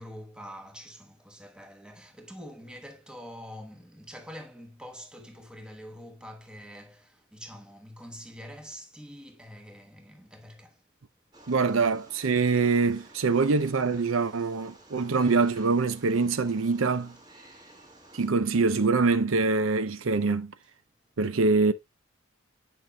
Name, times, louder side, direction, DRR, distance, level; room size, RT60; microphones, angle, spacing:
voice 1, 0.0-10.8 13.3-13.4 14.9-15.1 17.6-17.8, equal, 5° right, 1.1 m, -45 dB
Wild animals, 11.3-18.3, right 1 dB, 20° right, 2.1 m, -53 dB
voice 2, 11.5-17.1 18.1-20.5 21.2-21.7, right 4 dB, 80° right, 0.6 m, -24 dB
9.2 x 5.5 x 2.2 m
head